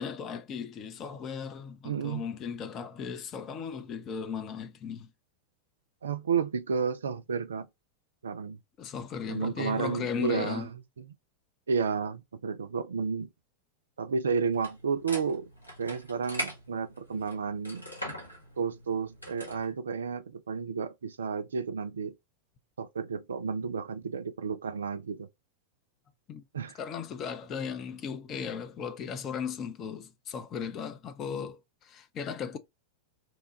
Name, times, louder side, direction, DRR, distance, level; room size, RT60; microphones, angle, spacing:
voice 1, 0.0-5.1 8.8-10.7 26.3-26.4 26.7-32.6, left 6 dB, 30° left, 0.5 m, -36 dB
voice 2, 1.8-2.3 6.0-7.7 8.2-8.6 9.3-10.6 11.7-13.3 14.0-15.5 15.8-17.9 18.6-22.2 22.8-25.3 26.5-26.8, right 5 dB, 70° right, 0.3 m, -31 dB
sound 1, 14.5-19.7, equal, 90° left, 0.9 m, -42 dB
2.9 x 2.2 x 2.7 m
figure-of-eight pair, 90°, 0 cm